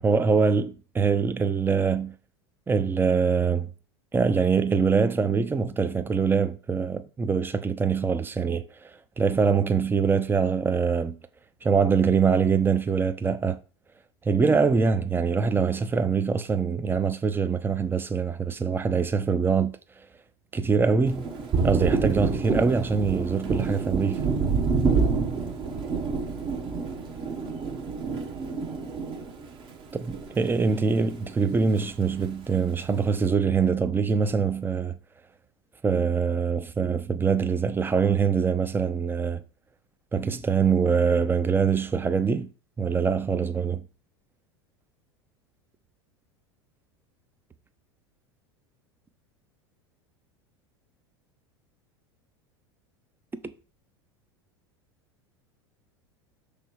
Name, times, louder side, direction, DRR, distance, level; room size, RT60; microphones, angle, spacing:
voice 1, 0.0-2.1 2.7-3.7 4.1-8.9 9.2-11.2 11.6-13.6 14.2-19.7 20.5-21.3 21.6-24.2 29.9-35.0 35.8-39.4 40.1-42.5 42.8-43.8, right 5 dB, 15° right, 0.7 m, -24 dB
Thunder, 21.1-30.8 31.1-32.3, right 4 dB, 35° right, 1.3 m, -28 dB
6.1 x 3.5 x 4.6 m
hypercardioid pair, 85°, 14 cm